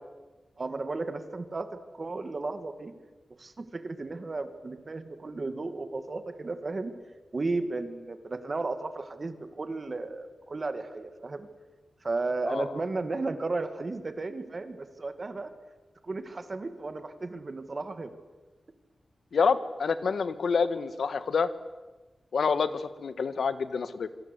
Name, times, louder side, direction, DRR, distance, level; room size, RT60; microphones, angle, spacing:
voice 1, 0.6-2.9 3.3-6.9 7.3-11.5 12.0-15.5 16.0-18.2, right 3 dB, 30° right, 10 dB, 1.8 m, -34 dB
voice 2, 19.3-21.5 22.3-24.1, left 5 dB, 65° left, 13 dB, 1.5 m, -27 dB
27.0 x 25.0 x 8.2 m, 1.2 s
wide cardioid pair, 175°, 0 cm